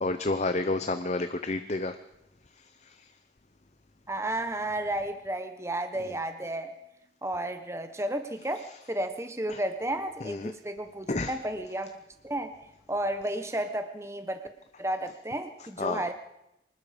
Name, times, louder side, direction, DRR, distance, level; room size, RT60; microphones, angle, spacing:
voice 1, 0.0-2.0 2.6-3.1 6.1-6.2 8.6-8.8 9.5-9.6 10.2-10.5 11.1-11.4 15.6-16.1, left 2 dB, 40° left, 10 dB, 0.8 m, -31 dB
voice 2, 4.1-6.7 7.2-11.9 12.2-12.5 12.9-14.4 14.8-16.1, right 1 dB, 15° right, 8 dB, 1.1 m, -32 dB
25.0 x 20.0 x 5.2 m, 0.87 s
head